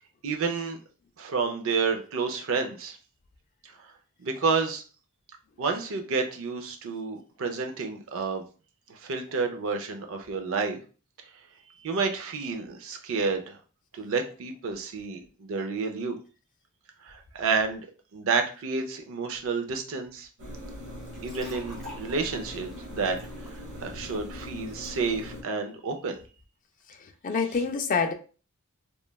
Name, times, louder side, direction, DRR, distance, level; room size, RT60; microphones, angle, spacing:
voice 1, 0.2-0.8 1.2-3.0 4.2-4.8 5.6-8.4 8.9-10.8 11.8-13.6 13.9-16.2 17.0-17.9 18.1-20.3 21.2-23.2 23.8-26.2, right 4 dB, 60° right, 0.5 m, -30 dB
sound 1, 20.4-25.4, left 1 dB, 80° right, 0.9 m, -41 dB
sound 2, 21.1-24.9, left 1 dB, ahead, 0.9 m, -49 dB
voice 2, 26.9-28.1, left 5 dB, 35° left, 0.3 m, -27 dB
3.0 x 2.2 x 2.2 m
head